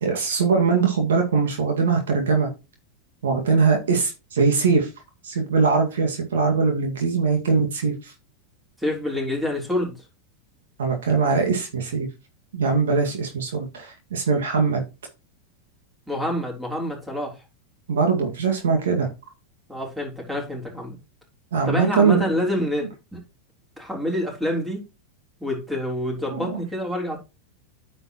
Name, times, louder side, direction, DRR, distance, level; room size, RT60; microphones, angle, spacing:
voice 1, 0.0-2.5 3.2-4.9 5.2-8.1 10.8-12.1 12.5-14.8 17.9-19.1 21.5-22.2 26.3-26.6, right 5 dB, 75° right, 2.0 m, -21 dB
voice 2, 8.8-10.0 16.1-17.4 19.7-21.0 21.7-23.2 23.8-24.8 25.4-27.2, left 1 dB, 5° right, 3.6 m, -27 dB
9.5 x 6.5 x 3.0 m
hypercardioid pair, 95°, 0 cm